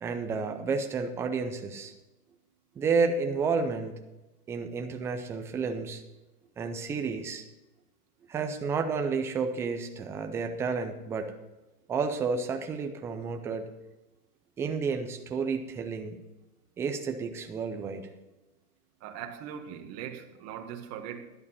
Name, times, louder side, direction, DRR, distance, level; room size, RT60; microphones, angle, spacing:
voice 1, 0.0-1.9 2.8-4.0 4.5-6.0 6.6-7.4 8.3-11.3 11.9-13.7 14.6-16.2 16.8-18.1, right 5 dB, 5° right, 0.4 m, -31 dB
voice 2, 19.0-21.3, right 9 dB, 35° right, 1.6 m, -40 dB
12.0 x 11.0 x 4.1 m
hypercardioid pair, 130°, 46 cm